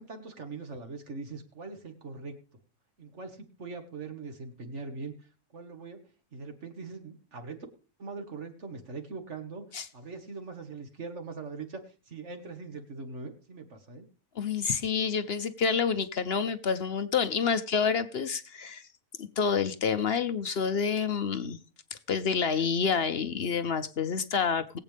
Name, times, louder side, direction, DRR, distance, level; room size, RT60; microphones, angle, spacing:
voice 1, 0.0-2.4 3.0-5.1 5.5-6.0 6.3-7.7 8.0-9.7 9.9-14.1, right 4 dB, 50° right, 6 dB, 2.0 m, -41 dB
voice 2, 14.4-18.8 19.4-21.6 22.1-24.8, left 6 dB, 55° left, 11 dB, 0.8 m, -28 dB
21.5 x 8.2 x 3.4 m, 0.36 s
omnidirectional pair, 1.6 m